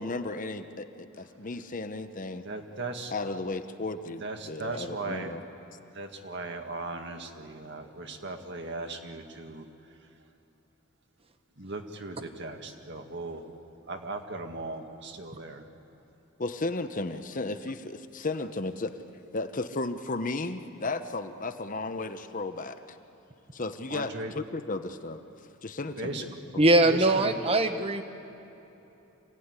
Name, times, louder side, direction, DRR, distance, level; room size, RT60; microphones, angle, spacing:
voice 1, 0.0-2.4 3.1-5.4 16.4-19.0 19.3-23.0 23.5-25.2 25.6-26.4, left 2 dB, 40° left, 9 dB, 0.9 m, -34 dB
voice 2, 2.4-3.1 4.2-5.3 5.9-9.7 11.6-13.4 13.9-15.7 23.9-24.3 26.0-26.3 26.8-27.4, right 2 dB, 55° right, 5 dB, 1.9 m, -38 dB
voice 3, 26.6-28.0, right 2 dB, 30° right, 8 dB, 1.2 m, -21 dB
26.5 x 17.0 x 9.7 m, 3.0 s
head